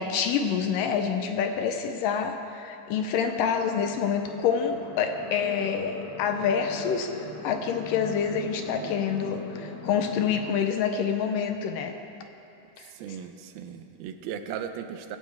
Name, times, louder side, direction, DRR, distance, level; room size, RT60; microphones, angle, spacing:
voice 1, 0.0-11.9 12.8-12.9, left 7 dB, 80° left, 6 dB, 2.1 m, -27 dB
sound 1, 2.8-10.5, left 2 dB, 50° left, 1.3 m, -41 dB
voice 2, 12.9-15.2, right 8 dB, 90° right, 8 dB, 2.7 m, -37 dB
19.5 x 16.0 x 3.5 m, 2.7 s
omnidirectional pair, 4.2 m